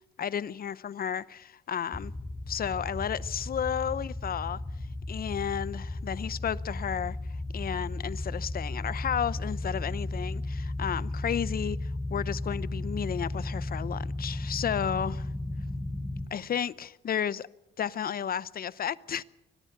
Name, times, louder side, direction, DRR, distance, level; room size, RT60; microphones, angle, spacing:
voice 1, 0.2-2.1 2.5-4.6 5.1-7.2 7.5-15.3 16.3-17.5 17.8-19.2, left 8 dB, 50° left, 0.7 m, -32 dB
sound 1, 1.9-16.3, left 2 dB, 10° left, 1.9 m, -35 dB
24.5 x 18.5 x 6.7 m
cardioid pair, 90°, 20 cm